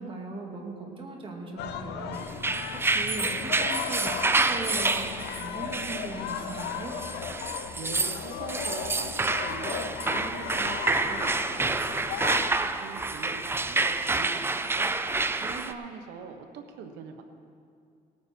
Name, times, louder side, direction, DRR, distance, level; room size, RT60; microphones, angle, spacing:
voice 1, 0.0-7.0, right 2 dB, 30° right, 0 dB, 2.3 m, -39 dB
sound 1, 1.6-12.5, left 8 dB, 80° left, 0.8 m, -36 dB
sound 2, 2.3-15.7, right 3 dB, 15° right, 0.5 m, -28 dB
voice 2, 2.9-4.0 7.8-14.9 15.4-17.2, right 5 dB, 85° right, 6 dB, 1.3 m, -43 dB
18.5 x 9.2 x 4.6 m, 2.4 s
cardioid pair, 110°, 17 cm